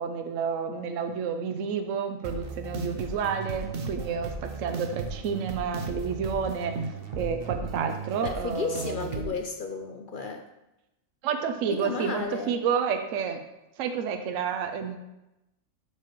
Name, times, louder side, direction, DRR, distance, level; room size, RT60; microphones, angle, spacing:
voice 1, 0.0-6.8 7.2-9.3 11.2-13.4 13.8-15.0, right 6 dB, 75° right, 6 dB, 1.0 m, -30 dB
sound 1, 2.2-9.3, right 4 dB, 50° right, 0.8 m, -36 dB
voice 2, 8.2-10.4 11.7-12.6, left 4 dB, 55° left, 4 dB, 0.6 m, -33 dB
11.5 x 4.9 x 3.1 m, 0.93 s
omnidirectional pair, 1.4 m